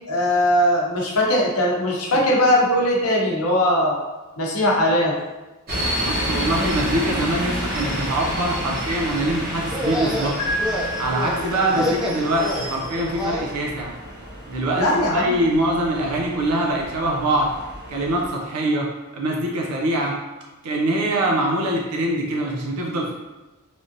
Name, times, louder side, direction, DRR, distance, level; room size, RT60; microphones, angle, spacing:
voice 1, 0.1-4.0 4.4-5.2 14.8-15.4, left 1 dB, 75° left, -2 dB, 0.7 m, -20 dB
sound 1, 5.7-18.3, equal, 45° right, 0.9 m, -30 dB
voice 2, 6.0-10.4 11.0-13.9 14.5-17.5 17.9-20.2 20.6-23.1, right 1 dB, 90° right, -1 dB, 0.5 m, -23 dB
sound 2, 9.6-13.5, left 1 dB, 5° right, 0.4 m, -28 dB
Piano, 10.4-12.3, left 1 dB, 30° left, 1.0 m, -30 dB
3.2 x 2.6 x 2.5 m, 1.1 s
head